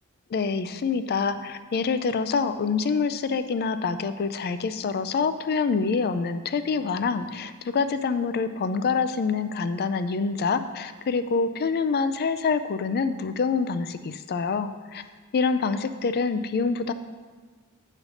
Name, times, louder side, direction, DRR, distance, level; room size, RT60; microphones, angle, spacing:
voice 1, 0.3-15.0 15.3-16.9, left 5 dB, 45° left, 11 dB, 0.4 m, -26 dB
9.6 x 3.2 x 6.3 m, 1.4 s
head